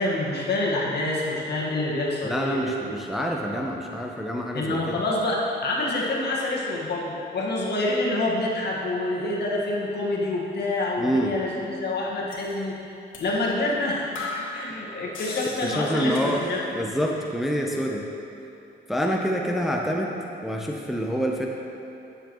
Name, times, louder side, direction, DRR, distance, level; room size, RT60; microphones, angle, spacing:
voice 1, 0.0-2.7 4.5-12.7 13.2-14.1 14.4-16.6, left 2 dB, 60° left, -3 dB, 1.5 m, -27 dB
voice 2, 2.2-5.0 11.0-11.4 15.6-16.4 16.7-18.1 18.9-20.2 20.4-21.5, equal, ahead, 0 dB, 0.6 m, -27 dB
sound 1, 12.3-12.5 13.1-13.3 13.7-13.8 14.1-16.8 17.1-17.6, left 3 dB, 80° left, 1.5 m, -38 dB
10.0 x 6.9 x 3.0 m, 2.8 s
cardioid pair, 90°, 20 cm